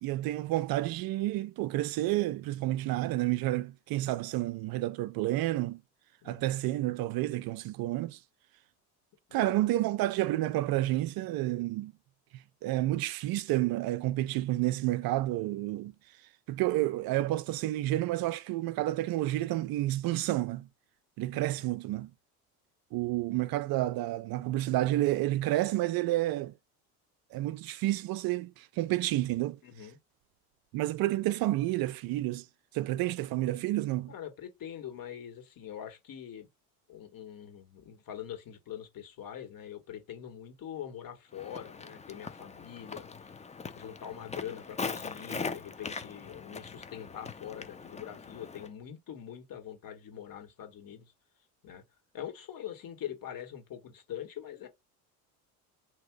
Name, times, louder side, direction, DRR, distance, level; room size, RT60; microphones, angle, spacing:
voice 1, 0.0-5.8 6.2-8.2 9.3-11.9 12.3-16.2 16.5-20.7 21.2-22.1 22.9-26.5 27.3-29.6 30.7-32.5 32.7-34.1, right 16 dB, 55° right, 0.5 m, -30 dB
voice 2, 6.2-6.6 9.3-9.7 21.5-21.7 29.6-30.0 34.1-36.5 36.9-43.1 43.7-51.1 51.6-51.8 52.1-54.7, left 10 dB, 50° left, 1.8 m, -43 dB
Walk footsteps, 41.3-48.7, left 4 dB, 15° left, 0.6 m, -41 dB
3.5 x 2.9 x 4.7 m
hypercardioid pair, 75°, 45 cm